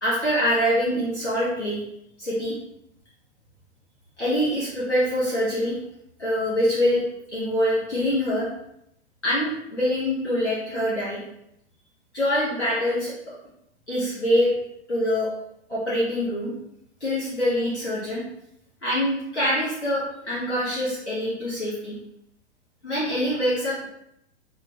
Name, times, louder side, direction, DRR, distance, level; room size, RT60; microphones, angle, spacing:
voice 1, 0.0-1.8 2.2-2.5 4.2-5.8 6.2-7.0 7.3-8.5 9.2-11.2 12.1-13.4 13.9-14.5 14.9-15.3 15.7-16.5 17.0-18.2 18.8-22.0 22.8-23.9, equal, 85° left, -8 dB, 1.1 m, -24 dB
4.0 x 2.2 x 2.7 m, 0.78 s
figure-of-eight pair, 105°, 34 cm